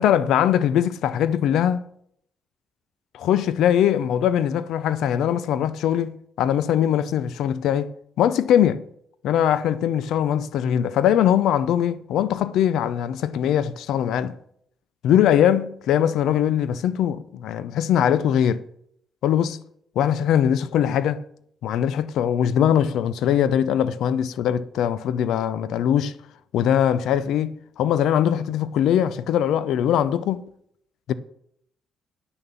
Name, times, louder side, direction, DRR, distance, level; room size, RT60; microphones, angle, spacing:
voice 1, 0.0-1.8 3.2-7.9 8.2-8.8 9.2-14.3 15.0-18.6 19.2-19.6 20.0-21.2 21.6-26.1 26.5-30.5 31.1-31.2, left 10 dB, 80° left, 0.6 m, -21 dB
9.0 x 6.9 x 6.9 m
cardioid pair, 90°, 0 cm